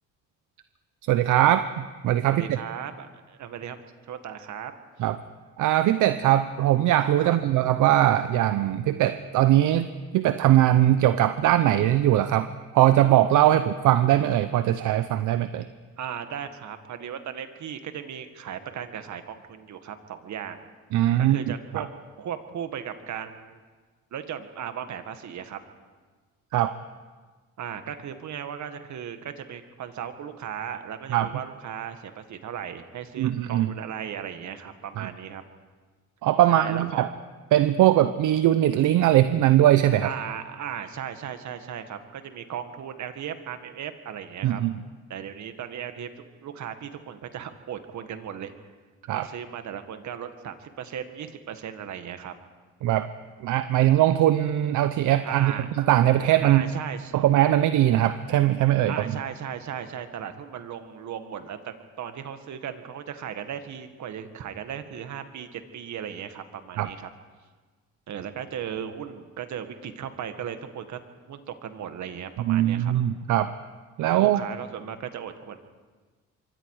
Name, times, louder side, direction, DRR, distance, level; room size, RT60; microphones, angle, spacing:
voice 1, 1.1-2.6 5.0-5.2 5.6-9.9 10.1-12.5 12.7-15.6 20.9-21.4 26.5-26.7 31.1-31.3 33.2-33.7 35.0-35.1 36.2-37.1 37.5-40.1 44.4-44.8 49.1-49.3 52.8-53.1 53.4-56.6 57.1-58.9 66.8-66.9 72.5-73.5 74.0-74.4, right 13 dB, 85° right, 11 dB, 0.8 m, -21 dB
voice 2, 2.3-3.8 4.0-4.7 7.2-7.4 13.5-13.6 16.0-20.7 21.2-21.9 22.2-23.6 24.1-25.6 27.6-35.4 36.5-37.1 40.0-44.6 45.1-48.5 49.1-52.3 55.2-55.7 56.4-57.1 58.9-67.1 68.1-71.0 71.3-72.9 74.0-75.6, right 8 dB, 70° right, 8 dB, 1.8 m, -36 dB
26.0 x 23.5 x 4.9 m, 1.4 s
cardioid pair, 90°, 30 cm